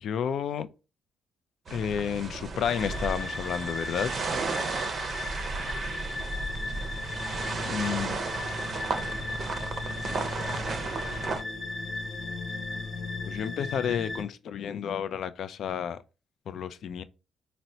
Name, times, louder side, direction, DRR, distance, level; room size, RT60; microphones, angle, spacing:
voice 1, 0.0-0.7 1.7-4.1 7.6-8.2 13.3-16.0 16.5-17.0, left 8 dB, 65° left, 0.3 m, -31 dB
sound 1, 1.7-11.4, right 3 dB, 50° right, 0.5 m, -34 dB
sound 2, 2.6-14.2, left 2 dB, 35° left, 0.7 m, -36 dB
4.1 x 2.0 x 2.6 m
cardioid pair, 90°, 0 cm